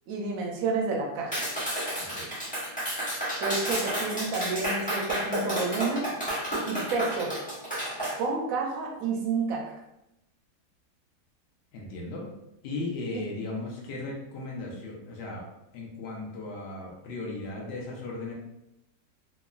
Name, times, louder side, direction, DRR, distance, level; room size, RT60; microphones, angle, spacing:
voice 1, 0.1-1.5 3.4-6.1 6.6-7.3 8.2-9.8 13.1-13.2, right 4 dB, 70° right, 0 dB, 0.9 m, -30 dB
Clapping, 1.3-8.2, right 1 dB, 5° left, 0.9 m, -31 dB
voice 2, 2.0-2.3 11.7-12.3 12.6-15.4 15.7-18.3, left 2 dB, 65° left, -1 dB, 0.6 m, -36 dB
2.9 x 2.3 x 2.3 m, 0.88 s
omnidirectional pair, 1.8 m